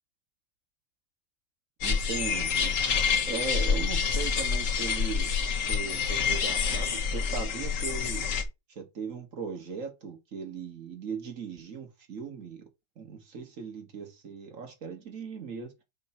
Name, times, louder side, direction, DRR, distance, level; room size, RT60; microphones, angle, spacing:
sound 1, 1.8-8.4, left 6 dB, 50° left, 1.4 m, -27 dB
voice 1, 1.8-2.8 3.3-5.3 5.6-8.2 8.8-12.6 13.0-15.8, right 5 dB, 50° right, 2.0 m, -38 dB
7.6 x 3.2 x 5.8 m
omnidirectional pair, 1.9 m